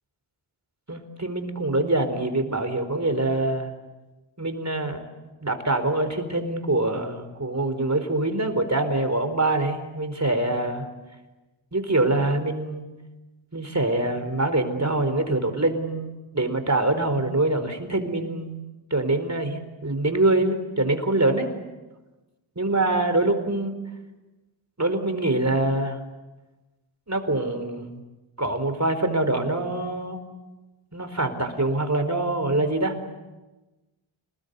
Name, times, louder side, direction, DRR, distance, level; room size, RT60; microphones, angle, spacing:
voice 1, 0.9-3.7 4.4-5.0 5.4-10.9 11.7-12.8 13.5-18.6 18.9-21.5 22.6-23.7 24.8-26.0 27.1-28.0 28.4-30.2 30.9-32.9, right 2 dB, 35° right, 8 dB, 4.3 m, -24 dB
28.0 x 20.5 x 8.3 m, 1.1 s
cardioid pair, 45°, 48 cm